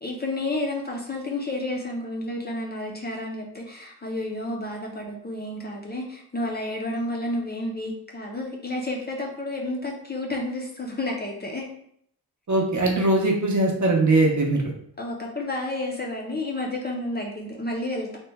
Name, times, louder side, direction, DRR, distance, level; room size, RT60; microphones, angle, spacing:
voice 1, 0.0-11.7 15.0-18.2, left 1 dB, 25° left, -1 dB, 0.5 m, -31 dB
voice 2, 12.5-14.6, right 2 dB, 50° right, 0 dB, 0.6 m, -21 dB
3.0 x 2.2 x 3.3 m, 0.67 s
wide cardioid pair, 145°, 39 cm